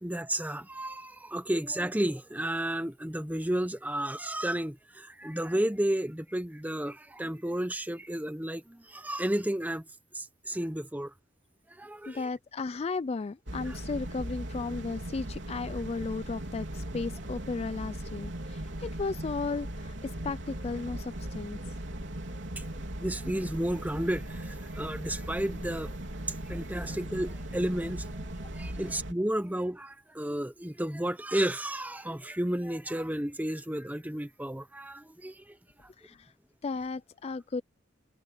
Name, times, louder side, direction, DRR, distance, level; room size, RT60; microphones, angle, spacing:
voice 1, 0.0-9.8 10.1-11.1 11.8-12.3 13.7-13.8 23.0-25.9 26.5-35.4, right 1 dB, 10° right, 1.0 m, -32 dB
voice 2, 12.1-21.6 36.0-36.3 36.6-37.6, left 4 dB, 30° left, 0.3 m, -35 dB
sound 1, 13.5-29.1, right 1 dB, 65° right, 4.0 m, -38 dB
sound 2, 16.7-27.7, right 1 dB, 40° right, 4.0 m, -59 dB
head